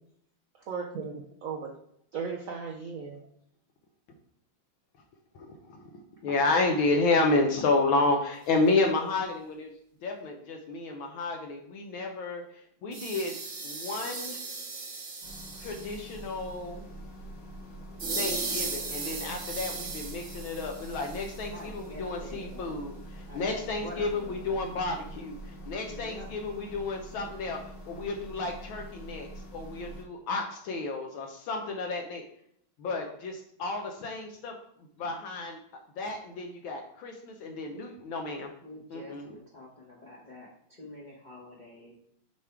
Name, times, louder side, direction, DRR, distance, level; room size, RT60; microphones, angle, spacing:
voice 1, 0.7-1.7 2.1-3.1, right 5 dB, 75° right, 1 dB, 0.7 m, -36 dB
voice 2, 5.3-9.7 10.0-12.4 12.8-13.3 13.6-14.4 15.6-16.8 18.2-27.6 27.8-32.2 32.8-34.5 35.0-35.6 36.0-38.5 38.9-39.3, left 3 dB, 75° left, 2 dB, 1.5 m, -31 dB
sound 1, 12.9-16.3 18.0-21.5, right 3 dB, 45° right, 1.0 m, -37 dB
sound 2, 15.2-30.1, right 1 dB, 60° left, 1.8 m, -45 dB
voice 3, 21.5-22.7 23.3-24.6 25.8-26.3 38.6-42.0, left 1 dB, 30° left, -4 dB, 0.8 m, -46 dB
7.2 x 3.5 x 4.5 m, 0.69 s
omnidirectional pair, 2.3 m